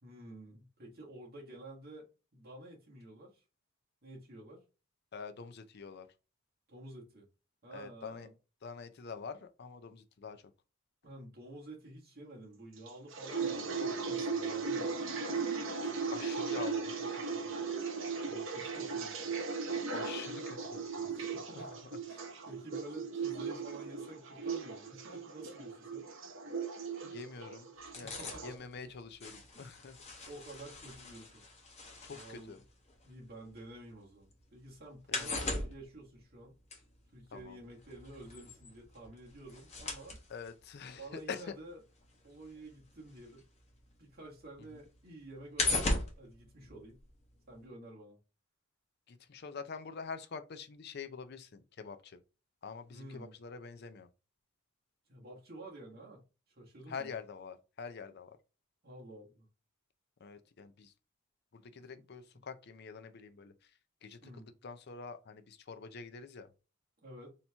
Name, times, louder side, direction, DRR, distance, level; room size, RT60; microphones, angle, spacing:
voice 1, 0.0-2.1 2.3-3.4 4.0-4.6 6.7-7.3 7.6-8.3 11.0-15.1 18.3-19.3 21.0-21.8 22.1-26.1 28.0-28.5 29.5-29.7 30.3-31.4 32.1-32.6 33.0-36.5 37.1-40.2 41.0-41.8 42.2-43.4 44.0-47.0 47.5-48.2 52.9-53.3 55.1-56.2 56.5-57.1 58.8-59.5 61.8-62.1 62.3-62.4 64.2-64.5 67.0-67.3, right 1 dB, 45° right, 1.5 m, -50 dB
voice 2, 5.1-6.1 7.7-8.3 8.6-10.4 15.8-17.1 17.4-17.6 19.9-21.1 21.6-21.7 22.1-22.2 27.1-27.7 28.0-30.3 32.0-32.6 35.1-35.7 37.3-37.6 40.3-41.6 49.1-52.2 52.6-54.1 56.9-58.4 60.2-60.9 61.5-63.5 64.0-64.3 64.6-66.5, left 5 dB, 50° left, 0.5 m, -46 dB
sound 1, 12.9-28.6, right 5 dB, 65° right, 0.9 m, -37 dB
sound 2, 27.8-33.9 34.2-43.9 44.2-47.3 47.6-47.7, left 2 dB, 30° left, 1.0 m, -39 dB
4.3 x 2.9 x 3.4 m
head